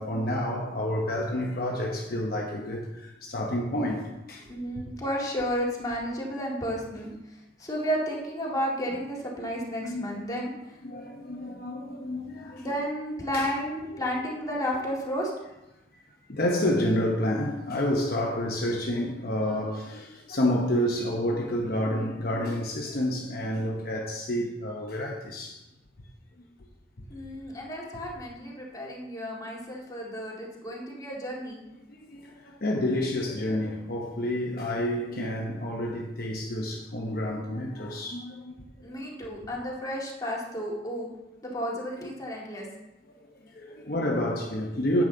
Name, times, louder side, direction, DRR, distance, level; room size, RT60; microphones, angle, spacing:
voice 1, 0.0-4.5 4.7-4.8 9.8-10.4 10.8-12.7 13.3-13.5 14.0-14.1 16.3-25.6 28.4-28.5 31.9-38.6 43.2-45.0, left 1 dB, 55° left, 0.9 m, -29 dB
voice 2, 4.5-7.1 7.6-10.5 12.6-15.3 27.1-31.6 38.8-41.1 41.4-42.7, equal, 20° left, 2.0 m, -32 dB
9.5 x 7.3 x 3.9 m
head